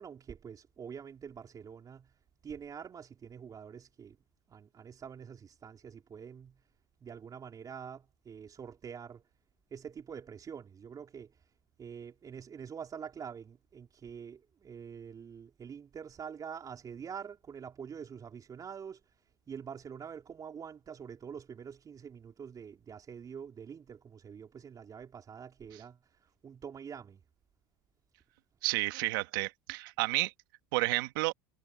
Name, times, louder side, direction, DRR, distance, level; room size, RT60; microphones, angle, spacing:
voice 1, 0.0-2.1 2.4-4.2 4.5-6.6 7.0-9.2 9.7-11.5 11.8-27.2, right 7 dB, 35° right, 4.2 m, -46 dB
voice 2, 28.6-30.3 30.7-31.3, right 22 dB, 75° right, 2.0 m, -31 dB
supercardioid pair, 90°, 11 cm